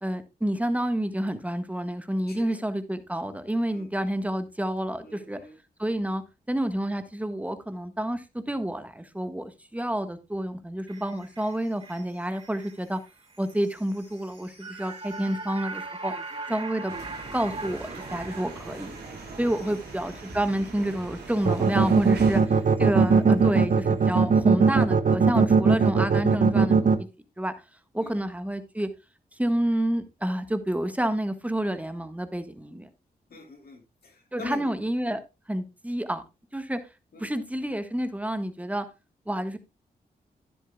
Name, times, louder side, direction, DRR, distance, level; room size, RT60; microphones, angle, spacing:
voice 1, 0.0-5.4 5.8-6.2 6.5-13.0 13.4-16.1 16.5-16.9 17.3-18.9 19.4-26.8 27.4-27.5 27.9-28.9 29.4-32.9 34.3-35.2 35.5-36.2 36.5-36.8 37.2-38.9 39.3-39.6, right 1 dB, 10° right, 1.5 m, -29 dB
voice 2, 2.3-2.6 3.7-3.9 5.0-5.5 16.1-16.2 16.5-16.6 19.6-19.7 25.8-25.9 28.0-28.1 33.3-34.7 35.0-35.2 37.1-37.3, left 3 dB, 65° left, 3.3 m, -43 dB
sound 1, 10.9-23.2 23.6-23.7, right 3 dB, 35° right, 4.9 m, -42 dB
sound 2, 16.9-22.4, right 3 dB, 80° right, 2.9 m, -41 dB
sound 3, 21.5-27.0, right 5 dB, 55° right, 1.0 m, -19 dB
12.0 x 10.0 x 2.3 m
cardioid pair, 50°, 17 cm